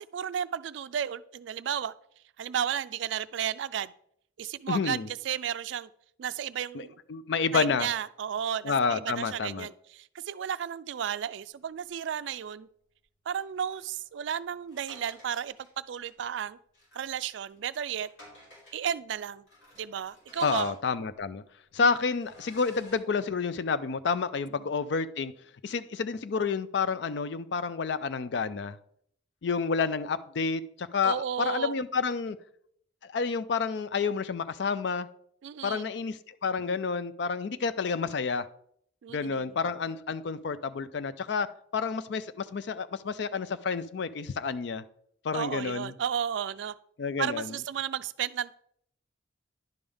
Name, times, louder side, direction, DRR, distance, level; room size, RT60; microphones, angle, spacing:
voice 1, 0.0-1.9 2.4-3.9 4.4-5.0 5.2-5.9 6.2-7.0 7.5-12.7 13.3-15.5 15.9-16.6 16.9-18.1 18.7-19.4 19.8-20.7 31.0-31.7 35.4-35.9 39.0-39.6 45.3-46.7 47.2-48.5, right 8 dB, 70° right, 16 dB, 0.3 m, -33 dB
voice 2, 4.7-5.1 6.7-7.9 8.6-9.7 20.4-21.4 21.7-25.3 25.6-28.8 29.4-32.4 33.1-35.1 35.6-38.5 39.1-41.5 41.7-44.8 45.2-45.9 47.0-47.5, left 5 dB, 65° left, 14 dB, 0.4 m, -29 dB
sound 1, 11.7-12.5 13.4-15.7 16.1-16.2 16.7-17.2 17.5-17.6 18.0-18.9 19.5-21.3 21.7-21.8 22.2-23.0, left 1 dB, 80° left, 3.2 m, -54 dB
10.5 x 5.4 x 3.4 m, 0.67 s
head